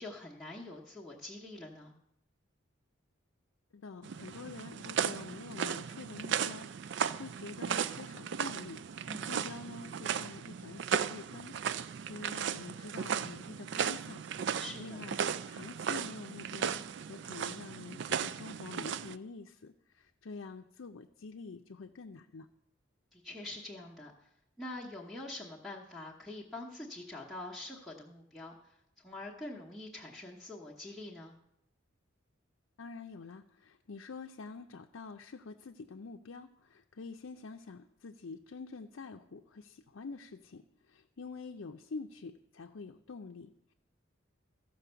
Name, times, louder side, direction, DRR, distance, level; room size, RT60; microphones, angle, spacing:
voice 1, 0.0-1.9 9.1-9.4 14.6-15.0 23.1-24.3 24.6-28.7 29.0-31.4, left 2 dB, ahead, -6 dB, 1.0 m, -45 dB
voice 2, 3.7-8.8 9.3-14.3 14.8-15.2 15.5-16.8 17.1-22.5 32.8-43.7, left 4 dB, 75° left, 3 dB, 0.5 m, -47 dB
sound 1, 4.0-19.2, right 7 dB, 60° right, 0.3 m, -36 dB
14.5 x 5.3 x 6.8 m, 0.80 s
head